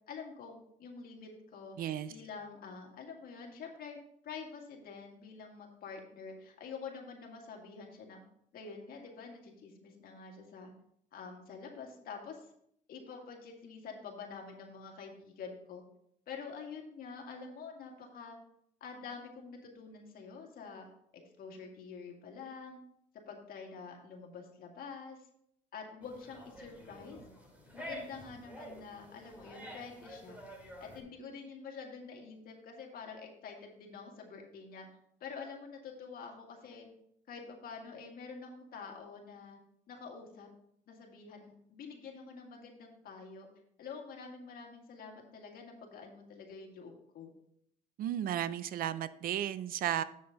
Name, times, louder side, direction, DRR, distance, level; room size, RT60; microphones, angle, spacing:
voice 1, 0.1-4.0 4.2-8.2 8.5-10.7 11.1-12.5 12.9-15.8 16.3-18.4 18.8-20.9 21.1-22.8 23.1-25.3 25.7-27.2 27.7-30.4 30.8-34.9 35.2-36.9 37.3-39.6 39.9-40.5 40.9-43.5 43.8-47.3, left 5 dB, 60° left, 1 dB, 2.0 m, -47 dB
voice 2, 1.8-2.1 48.0-50.0, right 11 dB, 60° right, 16 dB, 0.5 m, -34 dB
sound 1, 26.0-31.0, equal, 10° right, 2.3 m, -49 dB
7.7 x 6.9 x 3.9 m, 0.71 s
cardioid pair, 110°, 17 cm